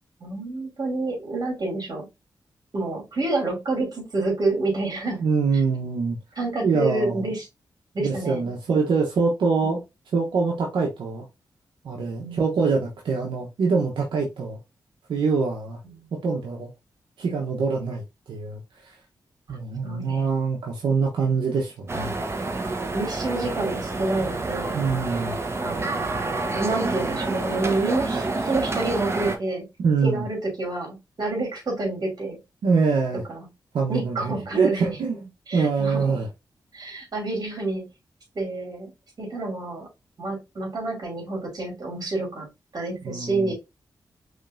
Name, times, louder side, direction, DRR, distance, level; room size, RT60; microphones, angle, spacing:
voice 1, 0.2-2.0 2.7-5.2 6.4-7.4 7.9-8.5 12.2-12.5 15.8-16.1 19.8-20.3 22.9-24.8 25.6-29.6 30.0-32.4 33.3-33.5 33.9-35.0 35.5-36.0 36.7-37.8 38.3-38.9 39.2-39.9 40.2-42.5 42.7-43.5, right 2 dB, 55° right, 2.8 m, -28 dB
voice 2, 5.2-6.2 6.6-7.3 8.0-9.8 10.1-11.3 11.8-14.6 15.1-15.8 16.2-16.7 17.2-18.9 19.5-22.5 24.7-25.4 29.8-30.2 32.6-33.2 33.7-36.3 43.0-43.5, right 4 dB, 90° right, 1.0 m, -24 dB
sound 1, 21.9-29.4, right 3 dB, 35° right, 1.0 m, -28 dB
5.3 x 3.2 x 2.6 m
cardioid pair, 65°, 8 cm